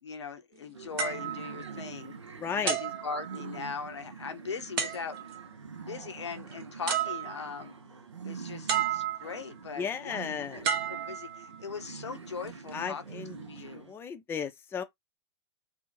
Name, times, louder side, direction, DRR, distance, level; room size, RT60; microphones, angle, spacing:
voice 1, 0.0-2.1 2.5-5.2 5.9-7.7 8.2-13.9, left 5 dB, 80° left, 0.6 m, -40 dB
sound 1, 0.7-13.9, right 5 dB, 85° right, 0.4 m, -45 dB
sound 2, 1.0-2.2 2.7-3.8 4.8-5.5 6.5-6.6 6.9-7.7 8.7-9.5 10.6-11.8 12.5-12.7, right 8 dB, 55° right, 0.7 m, -33 dB
voice 2, 2.4-2.8 9.8-10.7 12.7-13.4 13.7-14.8, left 7 dB, 15° left, 0.4 m, -34 dB
2.5 x 2.1 x 3.0 m
figure-of-eight pair, 90°, 15 cm